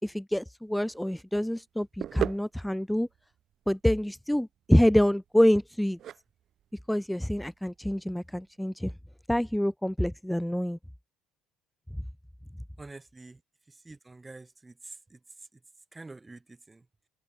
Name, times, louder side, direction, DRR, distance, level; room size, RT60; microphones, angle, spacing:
voice 1, 0.0-3.1 3.7-6.0 6.9-8.9 9.3-10.8, equal, 5° left, 2.8 m, -26 dB
sound 1, 0.7-8.6, right 10 dB, 50° right, 5.9 m, -40 dB
voice 2, 12.8-13.4 13.9-15.2 15.9-16.8, right 2 dB, 15° right, 3.9 m, -47 dB
open air
supercardioid pair, 90°, 0 cm